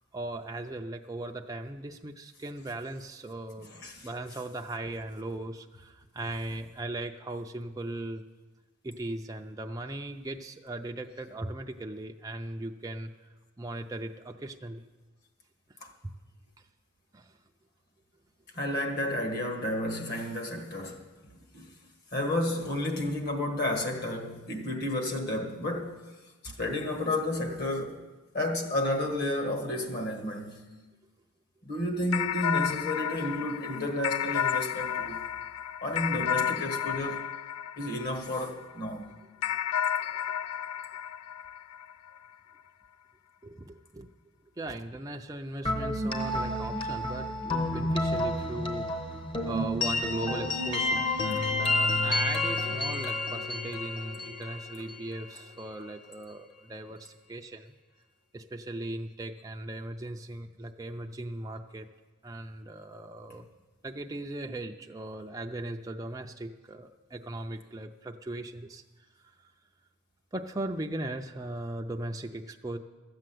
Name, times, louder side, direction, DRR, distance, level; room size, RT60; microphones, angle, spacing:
voice 1, 0.1-3.7 4.0-8.2 8.8-13.3 13.6-14.8 16.0-16.1 17.1-17.3 43.4-44.1 44.6-57.7 58.3-61.9 62.2-63.5 63.8-68.8 69.4-69.5 70.3-72.8, right 2 dB, 15° right, 0.4 m, -38 dB
voice 2, 3.7-4.1 15.8-15.9 18.5-21.0 21.5-21.7 22.1-26.1 26.4-28.0 28.3-30.6 31.6-35.2 35.8-37.3 37.8-39.2, left 1 dB, 45° left, 1.7 m, -31 dB
sound 1, 32.1-38.7 39.4-42.2, left 9 dB, 85° left, 0.3 m, -32 dB
sound 2, 45.6-55.4, left 2 dB, 25° left, 1.0 m, -30 dB
13.5 x 7.7 x 7.7 m
head